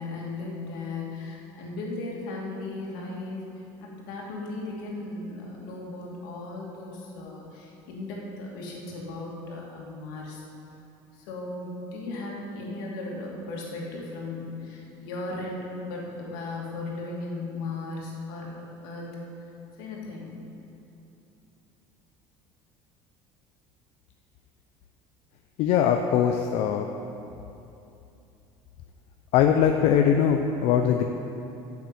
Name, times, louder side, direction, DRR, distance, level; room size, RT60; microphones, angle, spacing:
voice 1, 0.0-3.5 3.8-10.4 11.1-19.2 19.8-20.3, left 2 dB, 85° left, -3 dB, 2.5 m, -36 dB
voice 2, 25.6-26.9 29.3-31.0, left 8 dB, 70° left, 5 dB, 0.6 m, -21 dB
9.3 x 7.3 x 8.0 m, 2.8 s
supercardioid pair, 110°, 11 cm